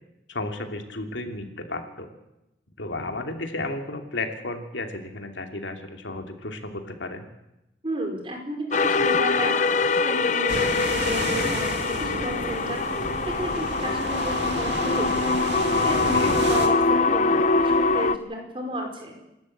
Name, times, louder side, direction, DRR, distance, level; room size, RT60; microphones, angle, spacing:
voice 1, 0.3-2.1 2.8-7.3 16.1-16.4, left 2 dB, 90° left, 5 dB, 2.8 m, -33 dB
voice 2, 7.8-9.6 10.0-12.8 13.3-15.4 15.8-19.1, equal, 30° right, 2 dB, 4.8 m, -33 dB
sound 1, 8.7-18.2, left 4 dB, 40° left, 0.8 m, -23 dB
sound 2, 10.5-16.7, right 2 dB, 75° right, 2.7 m, -31 dB
27.0 x 13.0 x 8.8 m, 0.91 s
head